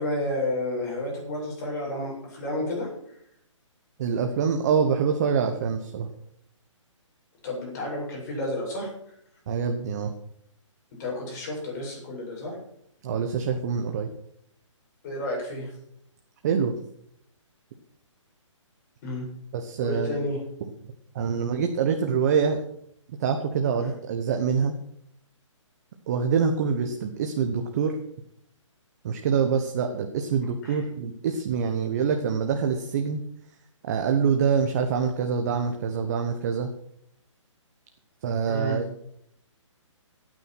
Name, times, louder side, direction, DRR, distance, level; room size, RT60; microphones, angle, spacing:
voice 1, 0.0-2.9 7.4-8.9 11.0-12.6 15.0-15.7 19.0-19.2 19.8-20.4 30.6-30.8 38.5-38.8, left 1 dB, 35° left, -2 dB, 7.8 m, -31 dB
voice 2, 4.0-6.1 9.5-10.1 13.0-14.1 16.4-16.7 19.5-20.2 21.1-22.6 23.2-24.7 26.1-28.0 29.0-33.2 33.8-36.7 38.2-39.0, right 6 dB, 30° right, 5 dB, 1.2 m, -25 dB
15.5 x 9.3 x 6.2 m, 0.71 s
hypercardioid pair, 160°, 16 cm